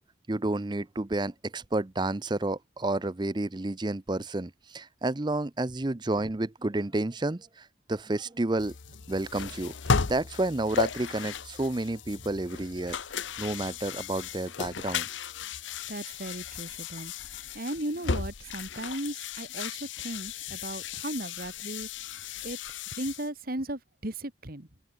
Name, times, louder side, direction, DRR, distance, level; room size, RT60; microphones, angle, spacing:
voice 1, 0.3-8.7 9.1-9.7 10.1-13.0 13.4-15.1, right 2 dB, 25° right, 0.6 m, -30 dB
sound 1, 8.6-23.3, left 5 dB, 75° left, 0.9 m, -35 dB
voice 2, 15.9-22.6 22.9-24.7, right 1 dB, 50° right, 2.8 m, -37 dB
open air
head